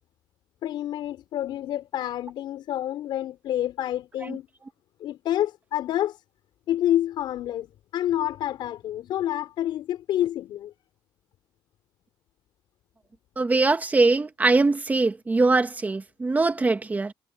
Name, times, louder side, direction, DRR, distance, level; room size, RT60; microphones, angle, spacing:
voice 1, 0.6-4.5 5.0-6.2 6.7-7.7 7.9-10.7, left 12 dB, 80° left, 5.4 m, -28 dB
voice 2, 13.4-17.1, right 3 dB, 20° right, 1.8 m, -22 dB
cardioid pair, 125°, 8 cm